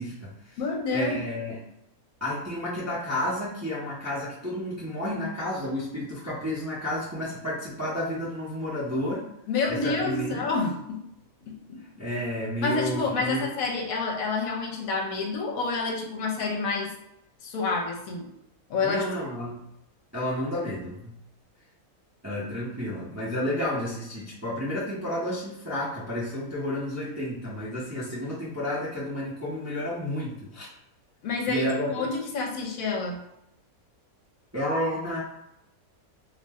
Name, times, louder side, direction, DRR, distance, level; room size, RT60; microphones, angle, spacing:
voice 1, 0.0-0.6 0.9-1.6 2.2-9.3 9.7-10.5 12.0-13.5 18.8-19.6 20.1-21.1 22.2-30.7 31.5-32.1 34.5-35.2, left 1 dB, 20° right, -7 dB, 0.5 m, -31 dB
voice 2, 0.6-1.2 9.5-11.0 11.5-11.8 12.6-16.9 17.4-18.3 18.7-19.0 31.2-33.2, left 4 dB, 75° left, 0 dB, 1.0 m, -28 dB
2.6 x 2.1 x 3.4 m, 0.82 s
omnidirectional pair, 1.6 m